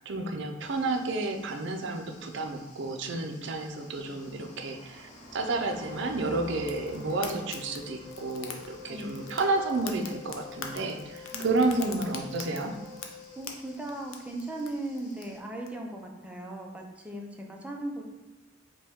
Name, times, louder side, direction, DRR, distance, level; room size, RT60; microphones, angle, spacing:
voice 1, 0.0-12.7, right 2 dB, 60° right, 4 dB, 0.5 m, -31 dB
sound 1, 0.6-15.4, left 1 dB, 40° left, 0.8 m, -52 dB
Wind instrument woodwind instrument, 5.5-13.4, left 6 dB, 10° left, 1.0 m, -47 dB
Fire, 6.7-15.7, left 6 dB, 85° left, 0.5 m, -45 dB
voice 2, 8.9-9.3 11.3-12.0 13.4-18.0, right 1 dB, 5° right, 0 dB, 0.5 m, -38 dB
5.2 x 2.3 x 3.5 m, 1.1 s
head